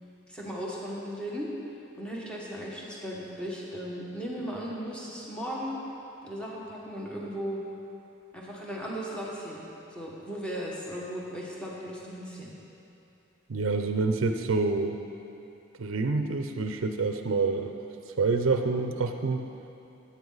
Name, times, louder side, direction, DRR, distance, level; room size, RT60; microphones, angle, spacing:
voice 1, 0.3-1.5 2.0-5.8 6.2-7.6 8.3-9.6 9.9-12.5, equal, 5° left, -5 dB, 1.4 m, -36 dB
voice 2, 13.5-15.0 15.8-17.7 18.2-19.5, right 4 dB, 85° right, 6 dB, 0.5 m, -27 dB
14.5 x 8.5 x 4.0 m, 2.8 s
head